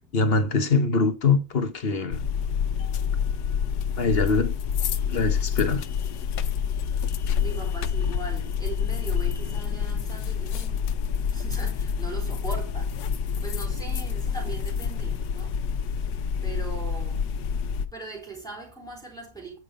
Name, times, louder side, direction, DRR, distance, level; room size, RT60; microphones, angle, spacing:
voice 1, 0.1-2.2 4.0-4.5 5.1-5.8, left 4 dB, 45° left, 1.1 m, -23 dB
sound 1, 2.1-17.9, left 7 dB, 85° left, 1.3 m, -27 dB
voice 2, 7.4-10.8 11.3-13.0 13.4-15.6 16.4-17.2 17.9-19.6, right 3 dB, ahead, 3.6 m, -39 dB
9.2 x 5.4 x 5.1 m
omnidirectional pair, 1.7 m